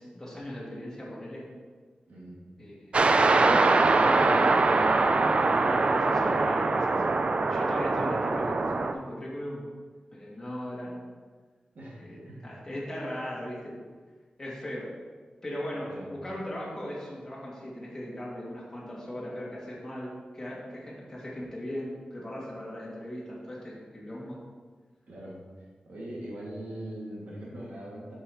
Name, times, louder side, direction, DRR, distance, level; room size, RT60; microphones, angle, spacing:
voice 1, 0.0-1.5 2.6-2.9 3.2-7.0 7.5-9.6 10.1-10.9 11.9-13.7 14.4-14.9 15.4-24.4, left 1 dB, 15° left, -7 dB, 2.4 m, -38 dB
voice 2, 2.1-2.4 11.7-12.5 15.9-16.1 25.1-25.4 25.8-28.2, right 1 dB, 85° right, -5 dB, 2.3 m, -41 dB
sound 1, 2.9-8.9, right 3 dB, 45° right, 0.4 m, -23 dB
8.1 x 6.5 x 3.1 m, 1.4 s
wide cardioid pair, 130°, 3 cm